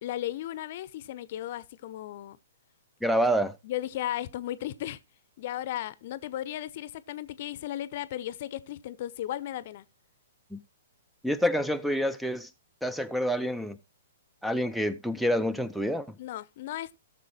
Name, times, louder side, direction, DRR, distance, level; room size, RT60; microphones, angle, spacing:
voice 1, 0.0-2.4 3.6-5.0 5.4-9.9 16.2-16.9, left 13 dB, 45° left, 0.7 m, -35 dB
voice 2, 3.0-3.5 10.5-10.6 11.2-12.5 12.8-13.8 14.4-16.1, equal, ahead, 0.6 m, -27 dB
17.5 x 6.8 x 3.1 m
figure-of-eight pair, 115°, 0 cm